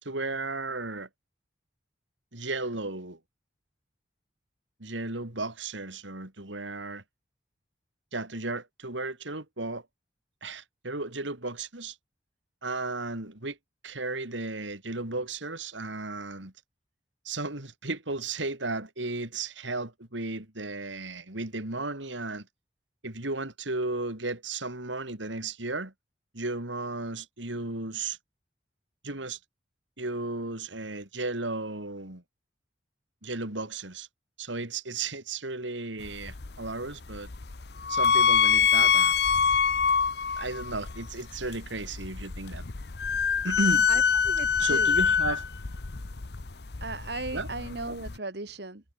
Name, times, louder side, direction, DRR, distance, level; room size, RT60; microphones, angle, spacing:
voice 1, 0.0-1.1 2.3-3.2 4.8-7.0 8.1-9.8 10.4-12.0 12.6-13.6 13.8-16.5 17.2-22.5 23.0-25.9 26.3-28.2 29.0-29.4 30.0-32.2 33.2-34.1 34.4-37.3 37.9-39.2 40.4-42.6 43.4-43.9 44.6-45.4 47.3-47.5, right 2 dB, 80° right, 3.8 m, -34 dB
sound 1, 36.0-48.2, left 6 dB, 60° left, 0.9 m, -26 dB
voice 2, 43.9-45.0 45.3-45.4 46.8-48.9, right 3 dB, 60° right, 2.0 m, -37 dB
head